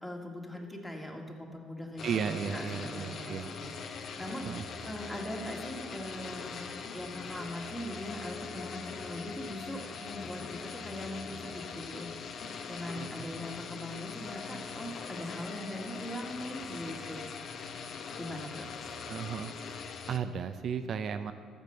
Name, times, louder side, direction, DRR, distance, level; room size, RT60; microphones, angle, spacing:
voice 1, 0.0-3.7 4.0-6.6 6.9-12.3 12.7-17.2 18.2-18.6, left 1 dB, 10° left, 1 dB, 1.9 m, -41 dB
sound 1, 2.0-20.2, left 5 dB, 55° left, 0.8 m, -42 dB
voice 2, 2.0-3.5 4.5-4.6 13.0-13.1 19.1-19.5 20.1-21.3, right 7 dB, 55° right, 9 dB, 0.5 m, -34 dB
12.5 x 5.2 x 7.8 m, 2.1 s
supercardioid pair, 75°, 0 cm